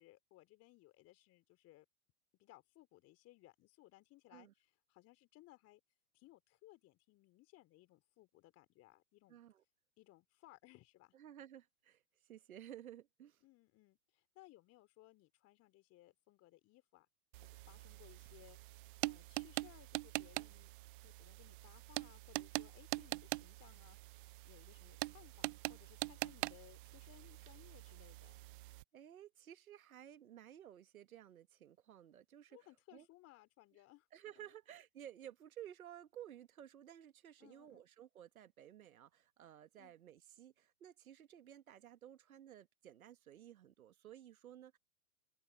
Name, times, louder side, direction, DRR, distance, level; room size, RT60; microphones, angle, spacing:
voice 1, 0.0-1.9 2.4-5.8 6.1-9.4 10.0-11.2 13.4-17.1 17.4-20.7 21.0-28.4 32.5-34.1 34.4-34.5 37.4-37.8 39.8-40.0, left 17 dB, 35° left, 3.8 m, -63 dB
voice 2, 9.3-9.6 11.1-13.4 28.9-32.6 32.9-33.1 34.1-44.8, right 11 dB, 70° right, 1.9 m, -55 dB
sound 1, 17.3-28.8, right 21 dB, 35° right, 0.5 m, -44 dB
open air
hypercardioid pair, 110°, 45 cm